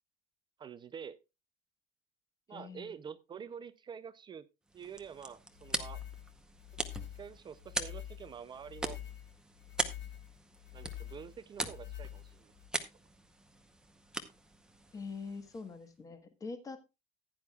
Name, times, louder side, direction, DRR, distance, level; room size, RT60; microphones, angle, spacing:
voice 1, 0.6-1.2 2.5-4.4 4.7-6.0 7.2-9.0 10.7-12.5, right 7 dB, 25° right, 13 dB, 0.4 m, -47 dB
voice 2, 2.5-2.9 14.9-16.8, left 4 dB, 15° left, 7 dB, 1.3 m, -44 dB
sound 1, 4.7-15.9, right 2 dB, 5° right, 0.8 m, -42 dB
sound 2, 5.6-12.7, left 11 dB, 75° left, 1.6 m, -47 dB
15.0 x 10.0 x 2.3 m, 0.25 s
cardioid pair, 180°, 20 cm